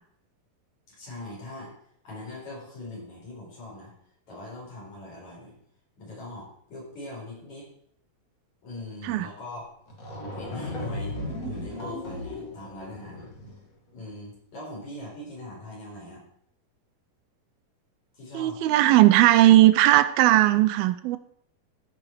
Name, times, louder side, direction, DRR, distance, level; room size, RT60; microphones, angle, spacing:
voice 1, 1.0-1.7 2.0-3.9 4.3-5.6 6.0-7.7 8.6-9.7 10.3-11.2 11.5-13.3 13.9-16.2 18.1-18.6, left 2 dB, 50° left, -4 dB, 5.8 m, -41 dB
sound 1, 9.6-9.7 9.9-13.7, left 1 dB, 30° left, 1.6 m, -36 dB
voice 2, 18.3-21.2, right 15 dB, 85° right, 13 dB, 2.5 m, -18 dB
14.5 x 6.0 x 4.7 m, 0.66 s
omnidirectional pair, 4.2 m